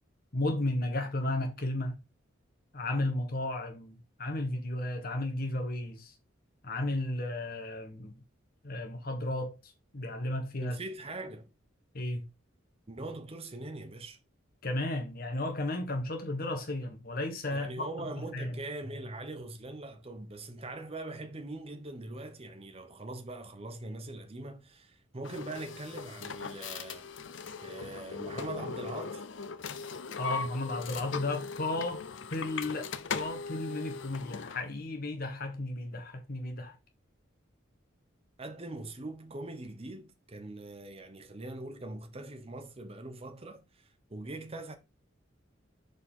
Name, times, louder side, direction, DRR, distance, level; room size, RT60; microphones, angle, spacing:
voice 1, 0.3-2.0 2.7-6.1 6.6-8.2 8.6-10.8 11.9-12.3 14.6-18.1 18.3-18.6 30.2-32.0 32.3-36.8, left 2 dB, 50° left, 1.4 m, -34 dB
voice 2, 10.6-11.5 12.9-14.2 17.5-27.1 27.6-29.2 38.4-44.8, right 2 dB, 30° right, 0.9 m, -42 dB
sound 1, 25.2-34.7, left 5 dB, 70° left, 0.6 m, -39 dB
6.5 x 4.8 x 3.8 m
head